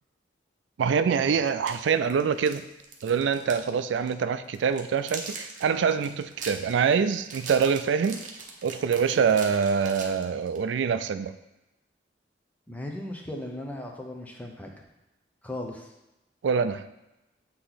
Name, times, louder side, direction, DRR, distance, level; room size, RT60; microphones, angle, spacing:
voice 1, 0.8-2.6 3.0-8.2 8.6-11.3 16.4-16.9, right 6 dB, 85° right, 12 dB, 0.3 m, -25 dB
sound 1, 1.5-3.7 4.0-4.1 4.5-10.6, right 4 dB, 45° right, 0.8 m, -41 dB
voice 2, 12.7-14.8 15.4-15.9, left 1 dB, 10° left, 1 dB, 0.7 m, -37 dB
8.2 x 2.9 x 3.9 m, 0.96 s
head